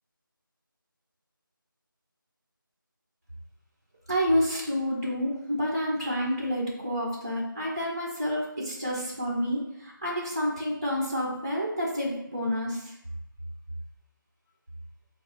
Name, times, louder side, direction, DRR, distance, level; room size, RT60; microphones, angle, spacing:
voice 1, 4.1-12.9, equal, 15° right, -9 dB, 0.5 m, -29 dB
4.0 x 2.3 x 4.3 m, 0.82 s
figure-of-eight pair, 170°, 12 cm